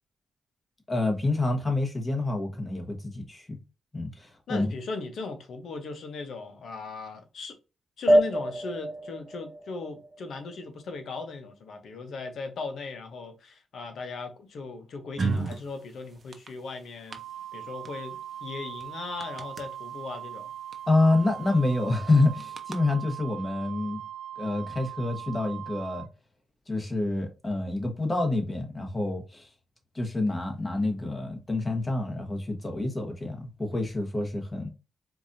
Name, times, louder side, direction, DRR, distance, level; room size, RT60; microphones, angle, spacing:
voice 1, 0.9-3.6 3.9-4.7 20.9-24.0 24.4-26.1 26.7-29.5 29.9-34.7, left 2 dB, 20° left, 1.4 m, -27 dB
voice 2, 4.5-7.5 8.0-17.2 17.5-18.2 18.4-20.5, left 4 dB, 70° left, 0.9 m, -38 dB
sound 1, 8.1-11.0, equal, 10° right, 0.4 m, -26 dB
sound 2, 15.2-15.6 16.2-16.5 17.1-17.2 17.8-17.9 18.2-18.3 18.8-18.9 19.2-19.6 20.7-20.8 21.1-21.3 22.4-22.8, right 4 dB, 40° right, 0.7 m, -29 dB
Wind instrument woodwind instrument, 17.1-26.1, right 10 dB, 85° right, 0.3 m, -40 dB
4.6 x 2.6 x 2.7 m
cardioid pair, 80°, 0 cm